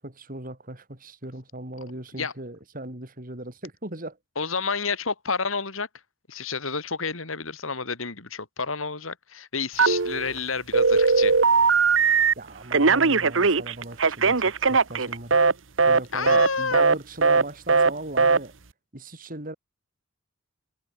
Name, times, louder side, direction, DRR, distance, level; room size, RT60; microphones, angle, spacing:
voice 1, 0.0-4.2 12.4-15.4 15.9-18.5 18.9-19.5, right 1 dB, 45° right, 4.5 m, -38 dB
voice 2, 4.4-5.9 6.3-11.3 16.1-16.9, left 5 dB, 85° left, 2.9 m, -30 dB
Telephone, 9.8-10.4 10.7-12.3 12.7-15.5 15.8-16.0 16.3-16.5 16.7-17.0 17.2-17.4 17.7-17.9 18.2-18.4, right 4 dB, 70° right, 1.2 m, -19 dB
head